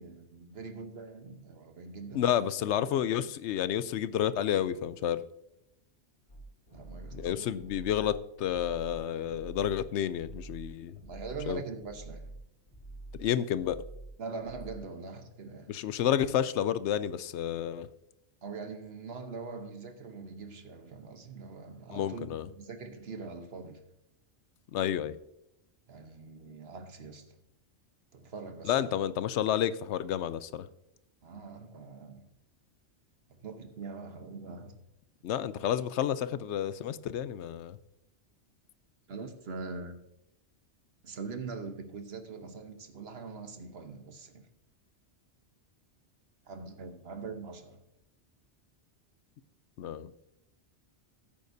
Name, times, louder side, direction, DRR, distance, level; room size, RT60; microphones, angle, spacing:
voice 1, 0.0-2.3 6.7-7.5 11.0-12.3 14.2-15.8 18.4-23.9 25.9-27.4 28.1-29.0 31.2-32.3 33.3-34.8 39.1-40.0 41.0-44.5 46.5-47.9, right 4 dB, 65° right, 1.2 m, -43 dB
voice 2, 2.1-5.2 7.1-11.0 11.5-11.6 13.2-13.8 15.7-17.9 21.9-22.5 24.7-25.2 28.6-30.7 35.2-37.8 49.8-50.1, left 10 dB, 80° left, 0.9 m, -30 dB
sound 1, 6.3-11.5 11.8-12.4 12.7-13.2 13.5-14.1 14.4-14.8, right 2 dB, 60° left, 3.7 m, -46 dB
15.0 x 8.7 x 2.7 m
omnidirectional pair, 1.2 m